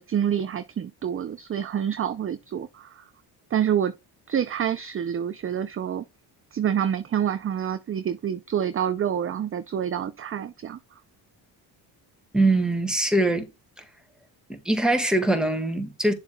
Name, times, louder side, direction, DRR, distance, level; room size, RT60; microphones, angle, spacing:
voice 1, 0.0-3.0 3.5-3.9 4.3-6.0 6.5-10.8, right 9 dB, 30° right, 0.4 m, -27 dB
voice 2, 12.3-13.5 14.5-16.1, right 2 dB, ahead, 1.7 m, -22 dB
7.0 x 6.7 x 2.2 m
cardioid pair, 75°, 45 cm